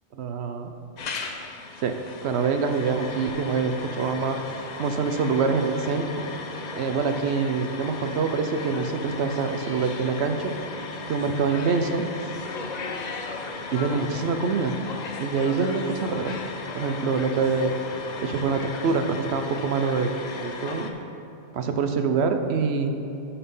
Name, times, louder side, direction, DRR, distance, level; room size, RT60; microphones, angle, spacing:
voice 1, 0.2-0.7 1.8-2.0 2.2-4.4 4.8-6.2 6.8-10.5 11.1-12.0 13.7-14.7 15.2-16.4 16.7-17.8 18.2-20.1 20.4-20.9 21.5-23.0, right 5 dB, 65° right, 7 dB, 0.9 m, -25 dB
sound 1, 1.0-20.9, left 4 dB, 45° left, 0.6 m, -36 dB
12.5 x 4.3 x 5.4 m, 2.8 s
omnidirectional pair, 1.2 m